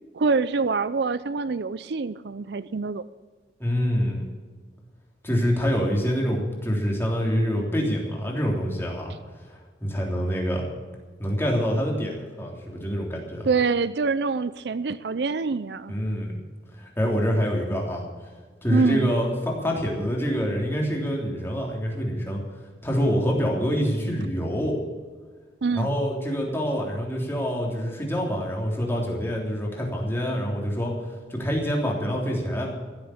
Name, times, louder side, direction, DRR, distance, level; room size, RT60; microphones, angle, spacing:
voice 1, 0.1-3.0 13.5-15.9 18.7-19.1 25.6-25.9, right 4 dB, 65° right, 15 dB, 0.5 m, -25 dB
voice 2, 3.6-4.3 5.2-9.1 9.8-10.6 11.2-13.5 15.9-16.4 16.8-18.1 18.6-22.4 22.8-24.8 25.8-30.9 31.3-32.7, equal, 15° left, -2 dB, 3.4 m, -26 dB
15.5 x 7.8 x 8.8 m, 1.5 s
head